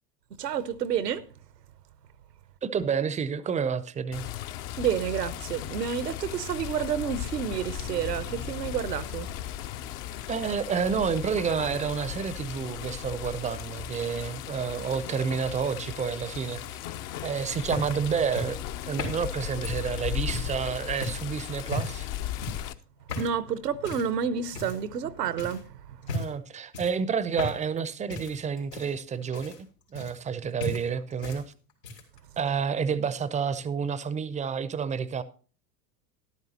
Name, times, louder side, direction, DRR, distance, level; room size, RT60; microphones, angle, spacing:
voice 1, 0.4-1.3 4.8-9.3 23.1-26.2, right 8 dB, 75° right, 1.0 m, -30 dB
voice 2, 2.6-4.3 10.3-16.6 17.2-18.6 18.8-22.1 26.1-29.6 29.9-31.4 32.4-35.2, right 6 dB, 15° right, 0.6 m, -29 dB
Water, 4.1-22.7, left 12 dB, 45° left, 0.8 m, -36 dB
sound 1, 17.1-20.6 21.0-21.3 21.7-22.1 22.4-22.7 23.1-23.4 23.8-24.1 24.5-25.0 25.4-25.6 26.0-26.4 26.7-27.8 28.1-30.3 30.6-31.4 31.7-32.2 33.1-33.2, left 2 dB, 80° left, 3.1 m, -36 dB
12.5 x 12.0 x 2.9 m
figure-of-eight pair, 80°, 49 cm